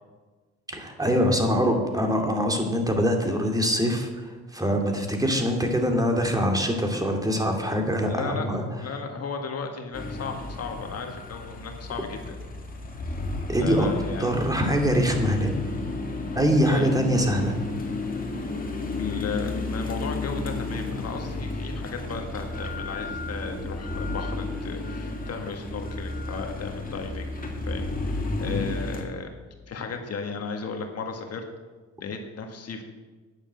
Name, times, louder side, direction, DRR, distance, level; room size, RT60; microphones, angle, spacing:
voice 1, 0.7-8.6 13.5-13.9 14.2-15.5 16.3-17.5 28.4-28.6, equal, 10° right, 3 dB, 2.6 m, -24 dB
voice 2, 8.1-12.4 13.6-14.4 16.6-16.9 18.3-18.4 18.7-27.4 27.7-29.3 29.7-31.4 32.0-32.8, left 5 dB, 55° left, 4 dB, 1.8 m, -35 dB
sound 1, 9.9-29.0, left 2 dB, 30° left, 2.4 m, -32 dB
10.0 x 8.9 x 7.6 m, 1.3 s
cardioid pair, 90°, 30 cm